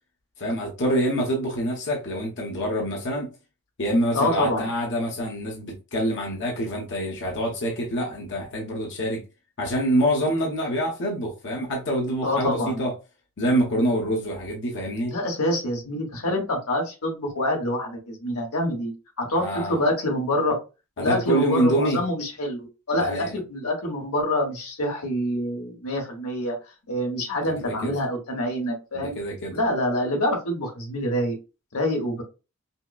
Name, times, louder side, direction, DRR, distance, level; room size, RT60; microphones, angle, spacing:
voice 1, 0.4-3.3 3.8-9.2 9.6-12.9 13.4-15.2 19.3-19.8 21.0-22.0 22.9-23.4 27.4-27.9 28.9-29.6, equal, 55° left, 0.9 m, -26 dB
voice 2, 4.1-4.7 12.2-12.8 15.1-20.6 21.0-26.6 26.9-29.2 29.5-31.4 31.7-32.2, left 1 dB, 85° left, 1.3 m, -26 dB
5.5 x 2.1 x 2.3 m
head